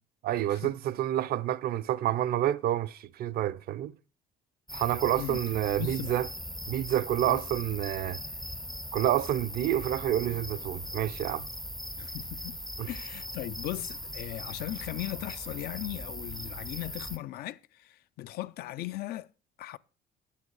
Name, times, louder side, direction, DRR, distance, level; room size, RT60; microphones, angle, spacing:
voice 1, 0.2-3.9 4.7-6.3 6.7-8.2 8.9-11.5 12.8-12.9, right 12 dB, 65° right, 0.6 m, -28 dB
sound 1, 4.7-17.2, equal, ahead, 0.4 m, -40 dB
voice 2, 5.8-6.2 7.3-7.4 12.0-12.6 12.9-19.3 19.6-19.8, left 16 dB, 65° left, 0.4 m, -38 dB
8.6 x 8.4 x 4.7 m
cardioid pair, 110°, 17 cm